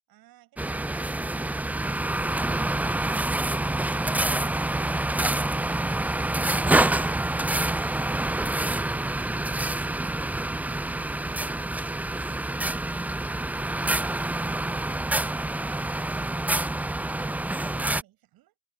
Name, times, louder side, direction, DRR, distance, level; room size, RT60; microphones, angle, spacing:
voice 1, 0.1-2.9, right 15 dB, 60° right, 7.8 m, -58 dB
sound 1, 0.6-18.0, right 2 dB, 5° right, 0.4 m, -27 dB
hypercardioid pair, 70°, 42 cm